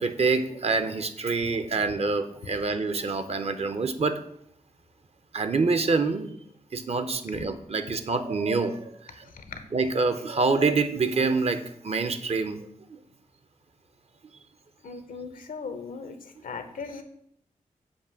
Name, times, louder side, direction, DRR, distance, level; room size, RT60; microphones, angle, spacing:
voice 1, 0.0-4.2 5.3-6.3 6.7-8.8 9.2-9.3 9.7-13.0, right 4 dB, 50° right, 10 dB, 0.6 m, -26 dB
voice 2, 14.8-16.2 16.4-17.0, left 5 dB, 80° left, 8 dB, 0.8 m, -38 dB
7.3 x 2.7 x 5.7 m, 0.69 s
cardioid pair, 70°, 14 cm